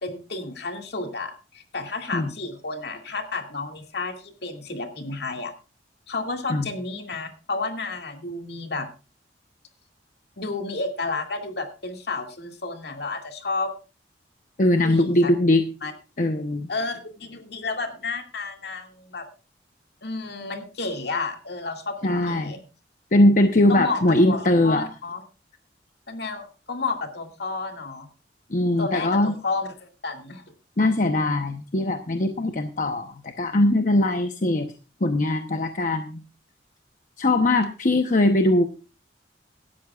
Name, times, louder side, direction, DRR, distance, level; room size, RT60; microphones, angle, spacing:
voice 1, 0.0-5.5 6.1-8.9 10.4-13.7 14.8-15.3 15.8-15.9 16.7-19.3 20.0-22.6 23.7-25.2 26.1-28.1 28.8-30.4, left 3 dB, 60° left, 4 dB, 2.2 m, -31 dB
voice 2, 14.6-15.6 16.2-16.7 22.0-22.5 23.1-24.9 28.5-29.3 30.8-34.7 35.0-36.2 37.2-38.7, left 1 dB, 45° left, 7 dB, 0.9 m, -21 dB
17.5 x 13.0 x 2.4 m, 0.32 s
head